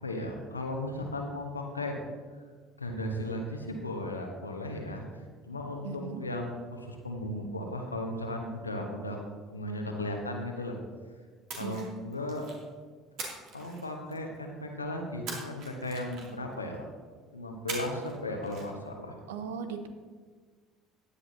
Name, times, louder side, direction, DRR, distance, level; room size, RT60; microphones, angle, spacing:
voice 1, 0.0-2.0 2.8-9.2 9.5-10.8 11.6-12.5 13.5-16.8 17.3-19.2, left 1 dB, 90° left, 2 dB, 1.2 m, -36 dB
voice 2, 5.8-6.3 11.6-11.9 19.3-19.9, right 6 dB, 70° right, 9 dB, 0.9 m, -38 dB
Splash splatter, 11.5-12.6 13.2-14.4 15.3-16.5 17.7-18.2 18.4-18.6, right 3 dB, 55° right, 2.6 m, -41 dB
16.5 x 10.0 x 2.8 m, 1.5 s
figure-of-eight pair, 60°, 0 cm